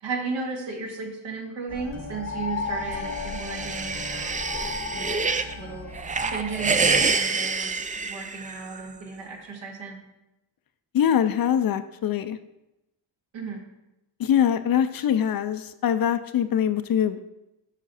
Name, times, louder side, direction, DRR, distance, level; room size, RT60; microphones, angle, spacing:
voice 1, 0.0-4.3 4.9-5.3 5.6-5.9 6.3-7.7 8.0-10.0 13.3-13.6, right 4 dB, 75° right, 0 dB, 1.9 m, -34 dB
sound 1, 1.7-7.1, left 4 dB, 35° left, 0.9 m, -35 dB
sound 2, 2.8-5.5 5.9-8.8, right 4 dB, 20° right, 0.3 m, -27 dB
voice 2, 10.9-12.4 14.2-17.2, left 9 dB, 50° left, 11 dB, 0.5 m, -23 dB
7.2 x 5.7 x 4.1 m, 0.91 s
cardioid pair, 80°, 46 cm